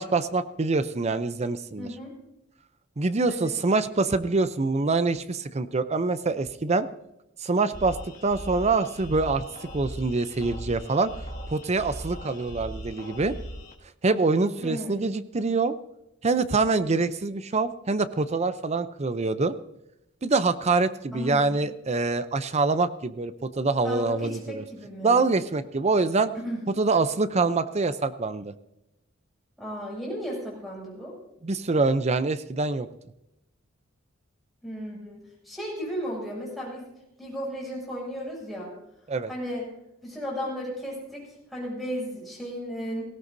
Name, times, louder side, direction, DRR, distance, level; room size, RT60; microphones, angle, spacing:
voice 1, 0.0-1.9 3.0-6.9 7.4-8.0 8.2-9.4 9.7-11.1 11.5-13.4 14.0-15.7 16.2-19.5 20.2-24.6 25.0-26.3 26.8-28.5 31.4-32.9 39.1-39.3, right 3 dB, 35° right, 12 dB, 0.6 m, -25 dB
voice 2, 1.8-2.1 3.3-3.5 14.6-15.0 21.1-21.6 23.8-25.2 26.3-26.6 29.6-31.1 34.6-36.9 37.2-38.7 39.3-39.7 40.0-41.2 41.5-43.0, equal, ahead, -5 dB, 6.6 m, -34 dB
sound 1, 7.7-13.7, equal, 40° left, 1.7 m, -39 dB
18.0 x 16.5 x 2.7 m, 0.86 s
head